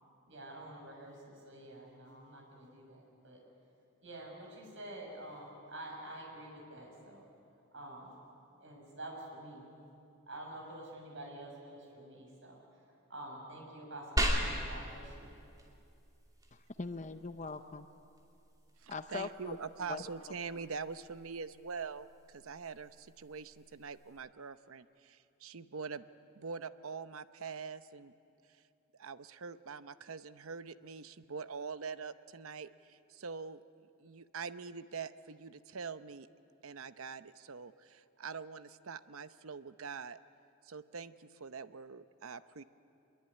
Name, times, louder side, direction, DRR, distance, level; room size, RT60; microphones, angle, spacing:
voice 1, 0.3-3.4 4.0-7.3 7.7-8.2 8.6-9.6 10.3-12.8 13.1-15.3, right 1 dB, 60° right, 0 dB, 6.8 m, -48 dB
sound 1, 14.2-24.2, equal, 15° right, 2.7 m, -41 dB
voice 2, 16.5-17.9 18.9-19.6 19.9-20.0, left 4 dB, 35° left, 9 dB, 0.6 m, -41 dB
voice 3, 18.8-26.1 26.3-28.1 29.0-33.6 34.0-36.3 36.6-40.2 40.6-42.6, right 5 dB, 75° right, 12 dB, 0.8 m, -44 dB
24.5 x 22.0 x 9.8 m, 2.6 s
head